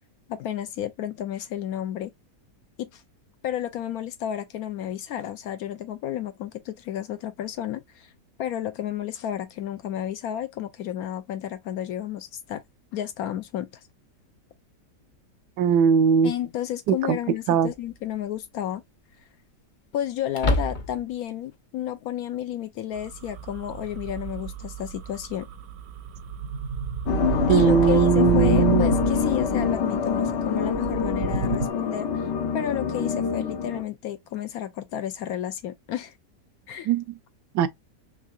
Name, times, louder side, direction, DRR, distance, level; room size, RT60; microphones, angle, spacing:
voice 1, 0.3-2.1 2.8-3.0 3.4-8.1 8.4-12.6 12.9-13.7 16.2-18.8 19.9-25.5 27.5-32.3 32.5-36.1 36.7-36.9, left 11 dB, 70° left, 1.0 m, -31 dB
voice 2, 15.6-16.3 16.9-17.2 17.5-17.7 27.5-28.9 36.8-37.0 37.5-37.7, right 7 dB, 80° right, 1.2 m, -20 dB
sound 1, 15.7-15.8 17.6-18.1 18.4-18.5 20.3-21.2, left 2 dB, 50° left, 0.5 m, -27 dB
sound 2, 23.0-31.7, right 6 dB, 60° right, 0.7 m, -30 dB
sound 3, 27.1-33.8, left 7 dB, 90° left, 1.4 m, -25 dB
3.7 x 3.3 x 2.3 m
omnidirectional pair, 1.8 m